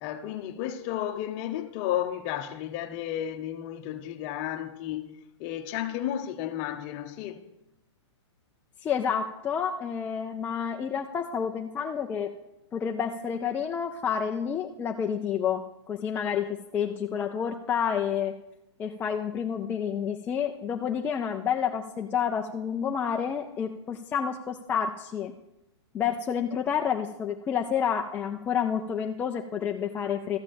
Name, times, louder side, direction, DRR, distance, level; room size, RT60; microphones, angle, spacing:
voice 1, 0.0-5.1 5.4-7.4, left 11 dB, 35° left, 0.8 m, -33 dB
voice 2, 8.8-12.3 12.7-18.4 18.8-25.3 25.9-30.4, left 7 dB, 10° left, 0.3 m, -29 dB
13.0 x 5.0 x 7.5 m
hypercardioid pair, 145°, 15 cm